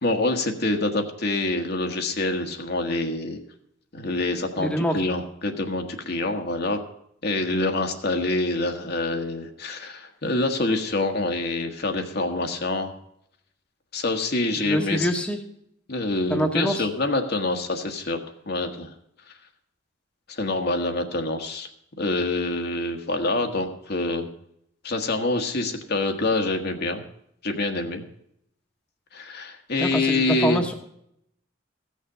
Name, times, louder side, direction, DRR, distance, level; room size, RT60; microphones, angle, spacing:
voice 1, 0.0-3.4 3.9-6.8 7.2-12.9 13.9-15.1 15.9-18.2 18.5-18.9 20.3-21.7 22.0-24.3 24.8-27.0 27.4-28.0 29.1-30.6, left 2 dB, 55° left, 4 dB, 1.4 m, -26 dB
voice 2, 4.6-5.0 14.6-15.4 16.3-16.9 29.8-30.7, equal, 5° left, 3 dB, 1.2 m, -25 dB
15.5 x 6.6 x 6.7 m, 0.74 s
head